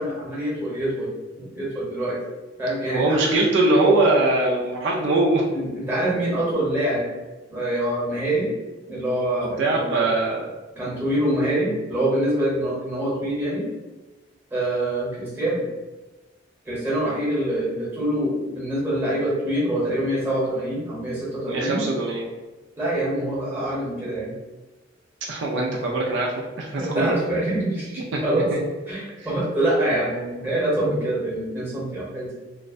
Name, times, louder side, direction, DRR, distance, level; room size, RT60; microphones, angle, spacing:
voice 1, 0.0-2.2 2.6-3.2 5.5-7.1 7.5-8.5 8.9-9.9 10.7-13.7 14.5-15.6 16.6-21.8 22.8-24.3 26.8-28.5 28.9-32.3, right 1 dB, 10° right, -7 dB, 0.8 m, -25 dB
voice 2, 2.8-5.4 9.6-10.5 21.5-22.3 25.3-27.1 28.1-28.2, right 2 dB, 65° right, -2 dB, 0.4 m, -21 dB
2.4 x 2.1 x 2.4 m, 1.2 s
head